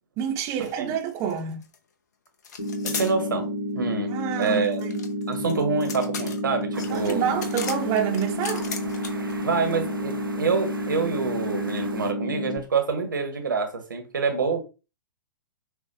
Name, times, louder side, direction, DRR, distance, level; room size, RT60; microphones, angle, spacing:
voice 1, 0.2-1.6 4.1-5.0 6.9-8.7, right 8 dB, 30° right, 0.8 m, -28 dB
sound 1, 0.6-0.8 1.0-1.8 2.4-3.1 4.4-9.3, left 6 dB, 50° left, 0.8 m, -36 dB
sound 2, 2.6-12.6, equal, 75° left, 1.3 m, -30 dB
voice 2, 2.9-4.8 5.3-7.4 9.4-14.6, right 4 dB, 70° right, 1.1 m, -27 dB
sound 3, 6.7-12.1, right 3 dB, 85° right, 0.6 m, -40 dB
6.6 x 2.5 x 2.7 m
figure-of-eight pair, 110°, 11 cm